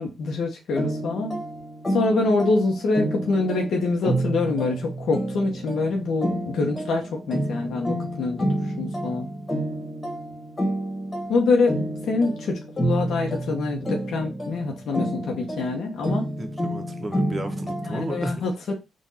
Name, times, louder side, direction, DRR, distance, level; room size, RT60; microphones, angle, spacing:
voice 1, 0.0-1.4 1.9-8.5 8.8-9.3 11.3-11.8 12.1-16.3 17.8-18.7, left 3 dB, 70° left, 1.0 m, -25 dB
sound 1, 0.8-18.2, right 1 dB, 30° left, 1.6 m, -29 dB
voice 2, 16.4-18.5, right 1 dB, 25° right, 1.2 m, -33 dB
3.9 x 2.6 x 4.1 m
hypercardioid pair, 45°, 0 cm